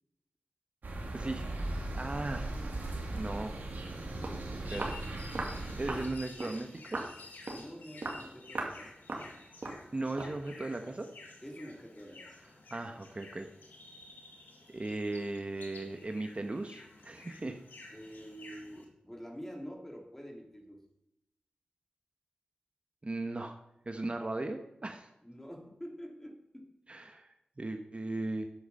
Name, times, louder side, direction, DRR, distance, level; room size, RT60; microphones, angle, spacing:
sound 1, 0.8-6.1, right 2 dB, 85° right, 2.2 m, -38 dB
voice 1, 1.1-1.5 1.9-2.5 3.1-3.6 4.5-5.0 5.8-7.0 9.9-11.1 12.7-13.5 14.7-17.6 23.0-23.6 23.9-25.1 26.9-27.3 27.6-28.5, right 2 dB, 40° right, 6 dB, 1.1 m, -37 dB
Walk footsteps, 4.2-4.4 4.8-5.0 5.3-5.6 5.9-6.1 6.4-6.6 6.9-7.1 7.5-7.7 8.0-8.2 8.5-8.8 9.1-9.3 9.6-9.8 10.2-10.4, right 2 dB, 70° right, 2.3 m, -38 dB
sound 2, 4.6-18.8, left 3 dB, 90° left, 1.9 m, -53 dB
voice 2, 7.5-8.9 11.4-12.3 17.9-20.8 25.2-26.7, equal, 15° left, 2 dB, 2.9 m, -47 dB
10.5 x 7.9 x 5.5 m, 0.84 s
cardioid pair, 40°, 3 cm